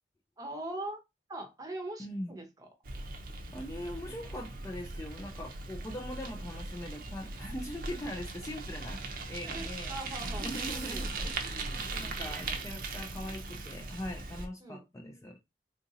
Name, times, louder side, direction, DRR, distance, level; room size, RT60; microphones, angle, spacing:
voice 1, 0.4-1.0 1.3-2.7 9.4-11.1 11.9-12.3 14.6-14.8, right 1 dB, 20° right, 0.7 m, -42 dB
voice 2, 2.0-2.4 3.5-10.0 10.4-15.4, left 1 dB, 15° left, 0.3 m, -41 dB
Bicycle, 2.8-14.5, right 3 dB, 50° right, 0.6 m, -39 dB
3.6 x 2.5 x 2.7 m
head